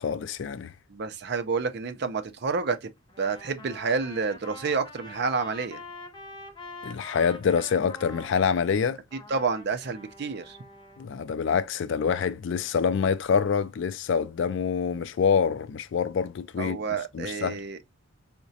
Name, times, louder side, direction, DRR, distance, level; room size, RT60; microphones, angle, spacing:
voice 1, 0.0-0.7 6.8-9.0 11.0-16.8 17.1-17.6, left 6 dB, 60° left, 0.3 m, -26 dB
voice 2, 0.9-2.9 3.2-5.8 9.3-10.6 16.6-17.8, right 4 dB, 50° right, 0.5 m, -29 dB
Trumpet, 3.1-8.6 9.1-11.1, left 2 dB, 20° left, 0.6 m, -45 dB
4.7 x 2.1 x 2.7 m
head